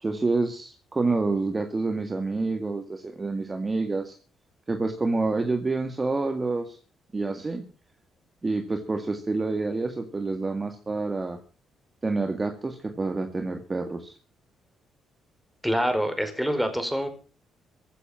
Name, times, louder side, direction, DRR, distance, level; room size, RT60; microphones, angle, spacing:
voice 1, 0.0-4.2 4.7-6.8 7.1-7.6 8.4-11.4 12.0-14.2, right 3 dB, 25° right, 6 dB, 2.1 m, -28 dB
voice 2, 15.6-17.1, equal, ahead, 7 dB, 4.9 m, -25 dB
15.5 x 10.0 x 7.2 m, 0.37 s
cardioid pair, 90°, 0 cm